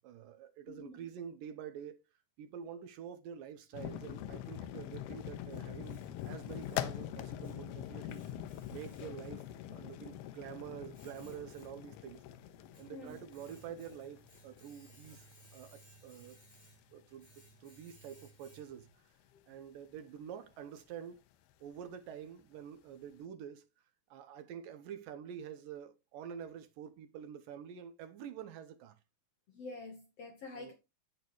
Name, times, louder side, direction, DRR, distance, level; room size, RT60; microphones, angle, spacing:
voice 1, 0.0-2.0 2.4-8.2 8.7-12.2 12.8-15.3 15.5-16.4 16.9-18.9 19.5-21.2 21.6-23.7 24.1-29.0 30.5-30.7, right 8 dB, 75° right, 2.3 m, -47 dB
voice 2, 0.7-1.0 12.9-13.2 29.5-30.7, left 3 dB, 60° left, 1.7 m, -47 dB
sound 1, 3.7-16.3 16.5-16.7 17.3-17.4 17.6-17.8 18.7-18.9, left 12 dB, 85° left, 2.7 m, -44 dB
Domestic sounds home sounds, 5.1-19.0, right 4 dB, 10° left, 2.6 m, -62 dB
9.1 x 8.5 x 3.1 m
omnidirectional pair, 4.4 m